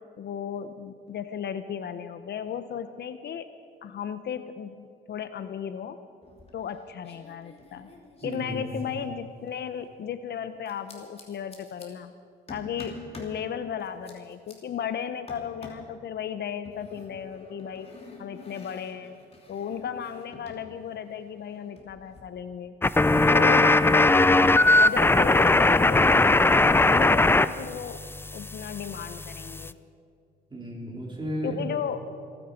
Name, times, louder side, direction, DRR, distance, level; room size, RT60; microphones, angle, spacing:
voice 1, 0.2-3.5 3.8-6.0 6.5-7.9 8.2-12.1 12.5-17.9 18.2-22.7 23.3-28.0 28.3-29.7 31.4-32.0, left 8 dB, 60° left, 11 dB, 0.7 m, -35 dB
sound 1, 6.2-6.8 7.0-9.7 10.7-11.9 12.5-13.4 13.8-14.5 15.3-15.9 16.7-20.7 20.9-22.2, left 3 dB, 30° left, 3.1 m, -47 dB
voice 2, 8.2-8.8 23.1-23.4 30.5-31.6, right 1 dB, 25° right, -2 dB, 4.3 m, -34 dB
sound 2, 22.8-27.5 27.7-29.7, left 2 dB, 10° left, 0.4 m, -20 dB
27.0 x 9.9 x 5.2 m, 2.3 s
cardioid pair, 90°, 20 cm